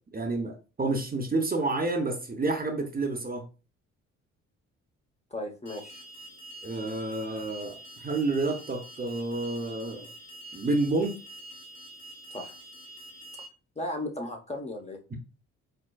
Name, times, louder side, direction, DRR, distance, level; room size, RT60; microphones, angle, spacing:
voice 1, 0.1-3.4 6.6-10.1 10.5-11.2 15.1-15.2, right 2 dB, 25° right, 3 dB, 0.8 m, -29 dB
voice 2, 5.3-6.0 12.3-12.5 13.8-15.0, left 1 dB, 20° left, 3 dB, 0.9 m, -35 dB
Alarm, 5.7-13.5, right 1 dB, 85° left, 0.9 m, -46 dB
4.5 x 2.2 x 2.3 m, 0.32 s
hypercardioid pair, 55°, 33 cm